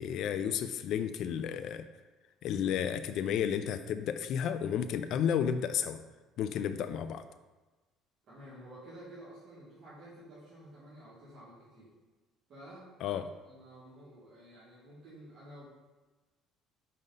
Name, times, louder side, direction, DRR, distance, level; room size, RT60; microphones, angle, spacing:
voice 1, 0.0-1.8 2.4-6.0 6.4-7.2 13.0-13.2, left 8 dB, 60° left, 10 dB, 0.4 m, -32 dB
voice 2, 8.3-11.9 12.5-15.7, right 1 dB, 50° right, -10 dB, 2.0 m, -51 dB
5.3 x 5.0 x 4.0 m, 1.2 s
cardioid pair, 130°, 0 cm